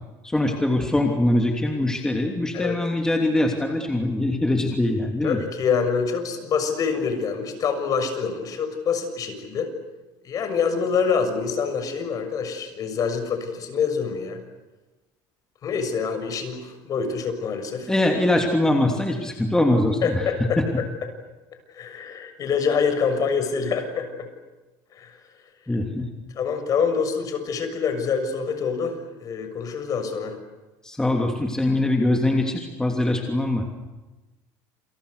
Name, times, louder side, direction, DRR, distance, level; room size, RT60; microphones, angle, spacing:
voice 1, 0.2-5.4 17.9-20.2 20.6-20.7 25.7-26.1 30.8-33.8, left 1 dB, 5° left, 2 dB, 3.0 m, -22 dB
voice 2, 5.2-9.7 10.2-14.4 15.6-17.9 20.0-20.6 21.7-24.1 24.9-25.2 26.3-30.4, left 6 dB, 40° left, 8 dB, 6.7 m, -26 dB
29.0 x 28.5 x 6.8 m, 1.1 s
cardioid pair, 130°, 9 cm